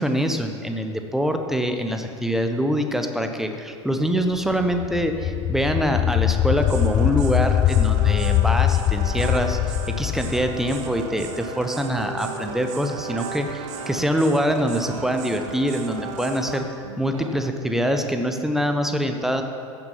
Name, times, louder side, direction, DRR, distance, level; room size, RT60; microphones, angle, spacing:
voice 1, 0.0-16.6 17.0-19.4, equal, ahead, 5 dB, 1.1 m, -24 dB
sound 1, 4.5-11.4, left 12 dB, 35° left, 0.5 m, -22 dB
sound 2, 6.6-16.6, right 5 dB, 50° right, 1.1 m, -36 dB
sound 3, 11.7-17.5, right 5 dB, 85° right, 0.7 m, -40 dB
15.0 x 6.8 x 5.6 m, 2.4 s
figure-of-eight pair, 75°, 16 cm